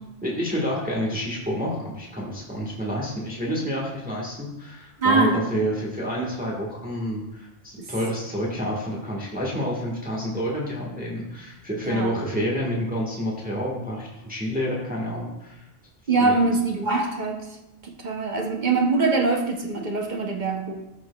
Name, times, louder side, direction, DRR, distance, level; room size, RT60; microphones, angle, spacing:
voice 1, 0.2-15.6 16.2-16.4, equal, 5° right, -3 dB, 1.3 m, -29 dB
voice 2, 5.0-5.5 7.8-7.9 11.8-12.2 16.1-17.6 17.8-20.7, right 3 dB, 45° right, 3 dB, 0.9 m, -23 dB
13.5 x 6.1 x 2.3 m, 0.95 s
omnidirectional pair, 1.2 m